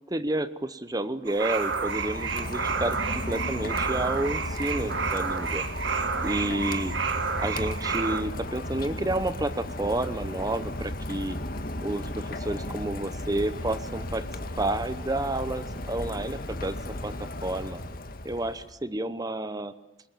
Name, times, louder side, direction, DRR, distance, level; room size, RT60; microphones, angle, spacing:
voice 1, 0.1-5.6 6.2-7.0 7.4-11.4 11.8-14.3 14.6-17.1 17.4-17.8 18.2-19.7, right 1 dB, 20° right, 13 dB, 0.9 m, -30 dB
sound 1, 1.3-8.2, right 5 dB, 75° right, 2.0 m, -30 dB
Rain, 1.4-18.7, left 1 dB, 50° left, 1.8 m, -35 dB
26.5 x 22.0 x 9.1 m, 0.92 s
head